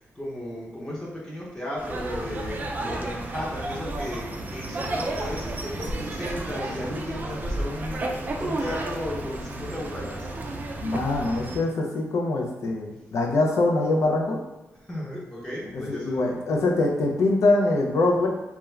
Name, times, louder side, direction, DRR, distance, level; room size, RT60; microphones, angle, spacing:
voice 1, 0.0-10.3 14.9-16.4, left 1 dB, 15° left, -6 dB, 0.7 m, -35 dB
sound 1, 1.8-11.6, right 2 dB, 35° right, 0.4 m, -32 dB
voice 2, 10.8-14.4 15.7-18.3, left 2 dB, 75° left, 1 dB, 0.5 m, -23 dB
2.4 x 2.2 x 3.1 m, 1.1 s
cardioid pair, 95°, 5 cm